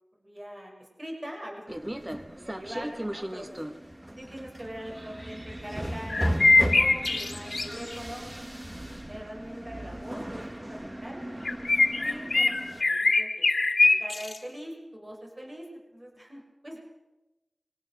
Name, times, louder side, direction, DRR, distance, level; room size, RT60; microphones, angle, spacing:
voice 1, 0.2-3.7 4.2-6.4 6.7-8.8 9.1-11.2 12.0-13.5 13.8-16.8, equal, 35° right, 0 dB, 7.1 m, -42 dB
sound 1, 1.7-12.8, equal, 20° right, 1.7 m, -36 dB
sound 2, 6.1-8.0 11.4-14.4, left 3 dB, 75° left, 1.9 m, -23 dB
23.5 x 18.0 x 7.9 m, 1.0 s
wide cardioid pair, 65°, 0 cm